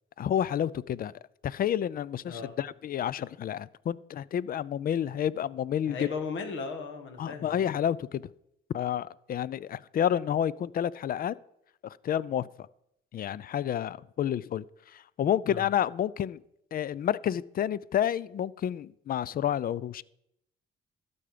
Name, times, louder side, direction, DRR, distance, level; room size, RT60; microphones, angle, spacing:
voice 1, 0.2-1.1 1.4-6.1 7.2-8.2 8.7-11.3 11.8-12.5 13.1-16.4 16.7-20.0, left 10 dB, 50° left, 21 dB, 0.4 m, -30 dB
voice 2, 2.2-2.5 5.8-7.7 15.4-15.7, left 4 dB, 75° left, 6 dB, 1.8 m, -37 dB
12.5 x 6.9 x 5.0 m, 0.78 s
cardioid pair, 90°, 20 cm